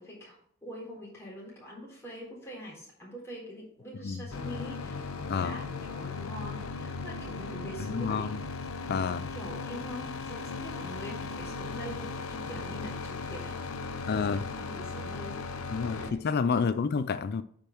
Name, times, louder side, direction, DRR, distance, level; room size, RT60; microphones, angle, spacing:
voice 1, 0.0-8.3 9.3-15.4 15.9-16.2 16.5-16.7, equal, 15° left, 3.9 m, -44 dB
sound 1, 4.3-16.1, left 4 dB, 90° left, 0.7 m, -37 dB
voice 2, 7.9-8.4 8.9-9.3 14.1-14.4 15.7-17.4, left 5 dB, 50° left, 0.4 m, -29 dB
9.0 x 5.3 x 4.5 m
head